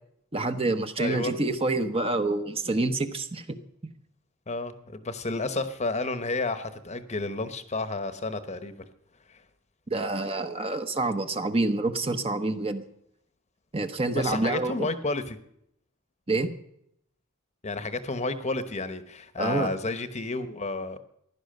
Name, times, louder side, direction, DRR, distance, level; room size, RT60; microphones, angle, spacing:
voice 1, 0.3-3.5 9.9-12.8 13.7-14.9 16.3-16.5 19.4-19.7, right 2 dB, 25° right, 8 dB, 1.0 m, -27 dB
voice 2, 1.0-1.3 4.5-8.8 9.3-9.4 14.1-15.4 17.6-21.0, left 3 dB, 30° left, 11 dB, 1.0 m, -31 dB
15.5 x 11.0 x 6.6 m, 0.74 s
head